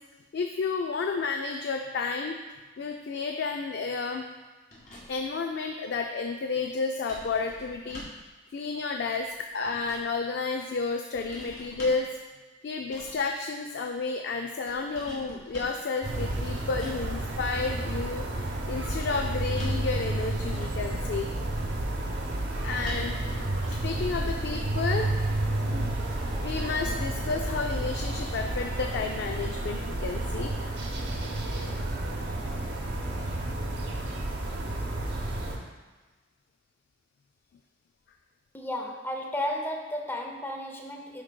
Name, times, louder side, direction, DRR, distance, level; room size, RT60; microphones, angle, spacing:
voice 1, 0.3-2.4 2.8-4.2 5.1-8.0 8.5-12.1 12.6-21.3 22.6-23.4 23.8-25.1 25.7-25.8 26.4-30.9, left 4 dB, 60° left, 3 dB, 0.3 m, -31 dB
sound 1, 4.7-5.3 7.1-8.3 9.3-10.1 11.1-12.1 12.8-13.3 14.7-15.8 16.6-17.0 18.9-19.9 20.3-20.9 22.8-24.0 24.3-24.5, left 1 dB, 45° left, 1.9 m, -44 dB
sound 2, 16.0-35.6, right 1 dB, 60° right, 0.8 m, -31 dB
voice 2, 38.5-41.2, left 1 dB, 10° left, 2 dB, 0.5 m, -33 dB
10.5 x 4.5 x 2.2 m, 1.3 s
head